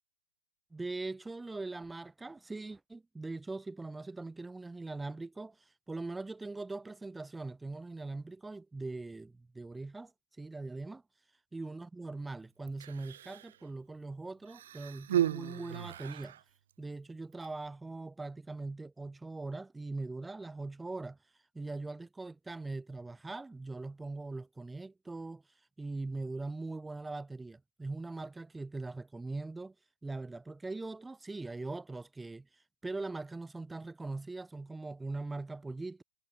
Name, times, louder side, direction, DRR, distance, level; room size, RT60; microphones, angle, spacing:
voice 1, 0.7-10.1 10.4-11.0 11.5-16.4 16.8-21.2 21.5-25.4 25.8-29.7 30.0-32.5 32.8-36.0, right 3 dB, 5° right, 6.0 m, -41 dB
Human voice, 12.7-13.6 14.5-16.4 17.3-17.5, right 11 dB, 60° right, 2.0 m, -35 dB
figure-of-eight pair, 100°, 0 cm